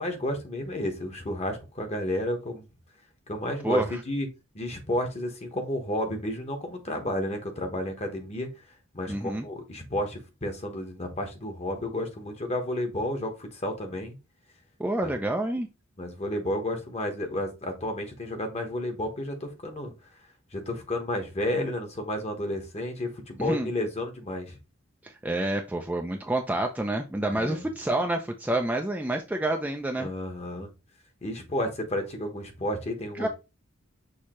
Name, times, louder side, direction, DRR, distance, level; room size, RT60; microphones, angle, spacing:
voice 1, 0.0-2.6 3.3-4.3 4.5-8.5 8.9-14.2 15.0-15.1 16.0-19.9 20.5-24.6 27.3-27.7 30.0-30.7 31.2-33.3, left 1 dB, 30° left, 5 dB, 1.1 m, -31 dB
voice 2, 9.1-9.5 14.8-15.7 23.4-23.7 25.0-30.1 33.2-33.3, right 1 dB, 10° right, 3 dB, 0.4 m, -28 dB
6.4 x 2.8 x 3.0 m, 0.27 s
head